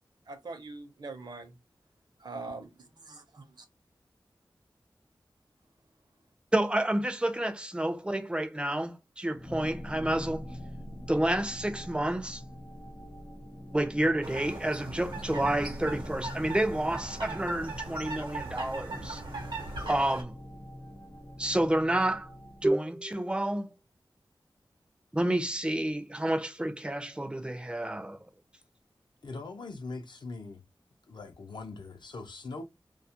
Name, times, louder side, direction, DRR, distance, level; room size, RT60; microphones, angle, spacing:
voice 1, 0.3-1.5 2.2-3.4, right 3 dB, 65° right, 0.6 m, -42 dB
voice 2, 6.5-10.5 11.1-12.4 13.7-19.2 19.9-20.4 21.4-22.3 22.6-23.7 25.1-28.2, right 1 dB, 10° right, 0.4 m, -29 dB
sound 1, 9.4-22.7, equal, 50° left, 0.9 m, -43 dB
sound 2, 14.2-20.2, right 3 dB, 90° right, 0.8 m, -40 dB
voice 3, 29.2-30.6 31.1-32.6, left 3 dB, 70° left, 0.5 m, -41 dB
2.3 x 2.0 x 2.8 m
wide cardioid pair, 90°, 8 cm